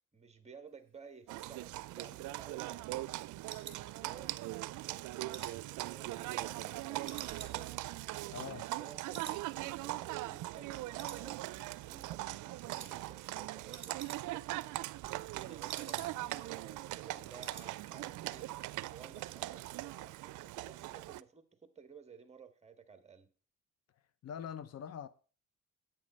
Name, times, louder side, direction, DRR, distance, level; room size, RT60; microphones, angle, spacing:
voice 1, 0.1-3.2 3.7-4.5 4.9-7.8 8.5-11.4 11.8-14.4 15.0-18.5 18.9-23.3, right 6 dB, 20° right, 1.5 m, -55 dB
Livestock farm animals working animals, 1.3-21.2, right 17 dB, 80° right, 0.5 m, -41 dB
sound 1, 2.2-4.5 4.9-6.7 7.0-8.9 9.1-9.5 9.7-9.8 10.3-10.7 11.0-11.7 12.0-12.3 12.7-12.9 13.2-13.3 13.5-14.5 14.8-16.4 16.7-16.8 17.1-17.7 18.0-18.3 18.6-18.7, right 6 dB, 40° right, 3.0 m, -51 dB
voice 2, 8.3-8.7 24.2-25.1, left 8 dB, 55° left, 0.8 m, -43 dB
8.7 x 7.6 x 5.3 m
cardioid pair, 90°, 30 cm